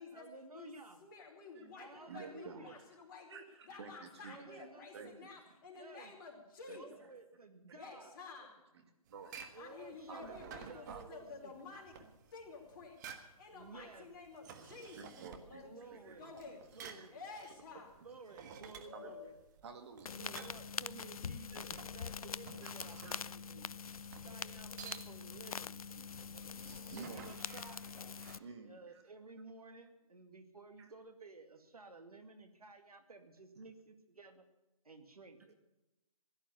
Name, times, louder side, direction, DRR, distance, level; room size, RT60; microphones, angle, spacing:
voice 1, 0.0-1.0 1.7-2.8 4.2-5.2 5.8-6.1 6.7-8.2 9.5-11.5 13.5-14.1 15.6-16.3 16.7-17.2 18.0-19.4 20.1-23.7 24.2-25.8 26.9-27.8 28.6-34.5 34.8-35.6, right 3 dB, 80° right, 7 dB, 2.3 m, -54 dB
voice 2, 1.0-7.1 7.7-8.6 9.5-16.6 17.1-17.9 18.7-19.3, left 4 dB, 35° left, 0 dB, 4.3 m, -52 dB
voice 3, 2.1-2.7 3.3-4.7 4.9-5.1 6.7-6.8 9.1-9.5 10.1-11.1 14.9-15.6 15.9-16.6 16.8-17.1 18.9-19.1 19.6-20.1 23.0-23.4 26.0-27.3 28.4-29.0 30.8-30.9, right 5 dB, 45° right, 5 dB, 2.3 m, -52 dB
sound 1, 9.1-28.4, right 7 dB, 30° right, 1.5 m, -54 dB
sound 2, 20.1-28.4, left 6 dB, 70° left, 0.5 m, -44 dB
16.5 x 11.5 x 6.9 m, 0.97 s
figure-of-eight pair, 145°, 19 cm